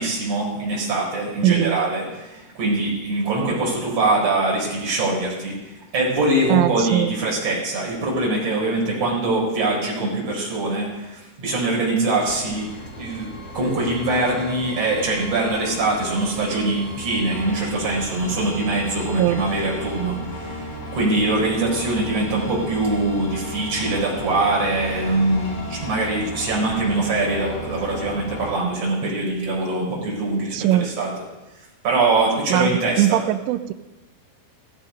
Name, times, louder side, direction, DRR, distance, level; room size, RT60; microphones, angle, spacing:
voice 1, 0.0-31.1 31.8-33.2, right 2 dB, 30° right, -3 dB, 5.3 m, -23 dB
voice 2, 1.4-1.8 6.5-7.1 19.2-19.4 30.5-30.9 32.5-32.7 33.0-33.7, right 14 dB, 80° right, 9 dB, 2.9 m, -20 dB
sound 1, 12.3-28.5, equal, 50° left, 1.9 m, -35 dB
15.5 x 14.0 x 5.2 m, 1.1 s
omnidirectional pair, 5.9 m